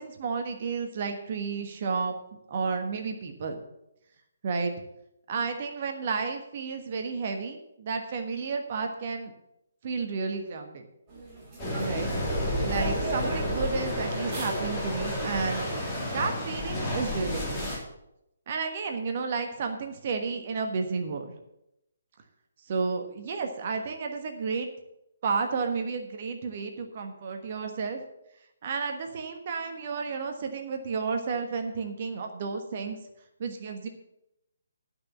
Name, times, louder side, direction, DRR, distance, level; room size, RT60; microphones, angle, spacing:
voice 1, 0.0-2.2 2.5-3.6 4.4-4.7 5.3-9.3 9.8-10.8 11.8-12.1 12.4-15.7 16.1-17.7 18.5-21.3 22.7-24.7 25.2-28.0 28.6-33.0 33.4-33.9, right 4 dB, 40° right, 5 dB, 1.3 m, -32 dB
sound 1, 11.1-16.2, right 2 dB, 20° right, 4.8 m, -39 dB
sound 2, 11.6-17.8, left 1 dB, 15° left, 3.4 m, -31 dB
12.0 x 6.0 x 7.3 m, 0.84 s
figure-of-eight pair, 135°, 0 cm